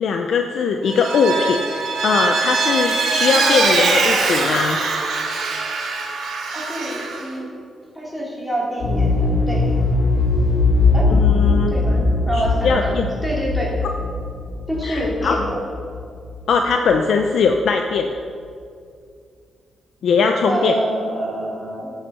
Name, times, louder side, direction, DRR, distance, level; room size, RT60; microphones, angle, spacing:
voice 1, 0.0-1.6 2.0-4.8 11.1-11.8 12.3-13.1 14.8-15.4 16.5-18.2 20.0-20.8, left 5 dB, 65° left, 4 dB, 0.6 m, -20 dB
Vehicle, 0.9-7.2, right 3 dB, 85° right, 2.4 m, -22 dB
voice 2, 6.5-7.5 7.9-9.7 10.9-11.1 11.7-13.7 14.7-15.6 20.5-21.9, right 1 dB, 5° left, -4 dB, 2.9 m, -26 dB
sound 1, 8.8-16.6 16.9-17.0, left 3 dB, 90° left, 2.9 m, -20 dB
11.0 x 8.2 x 5.6 m, 2.3 s
wide cardioid pair, 150°, 0 cm